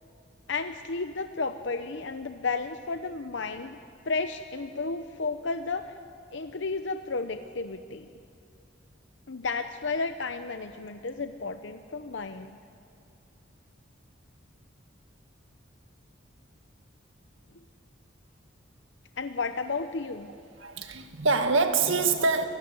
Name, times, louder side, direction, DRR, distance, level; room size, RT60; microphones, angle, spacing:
voice 1, 0.5-3.8 4.0-5.9 6.3-8.1 9.3-12.6 19.2-20.3, left 4 dB, 65° left, 8 dB, 0.7 m, -32 dB
voice 2, 20.6-22.4, right 4 dB, 80° right, 7 dB, 1.8 m, -25 dB
25.5 x 17.5 x 9.6 m, 2.5 s
head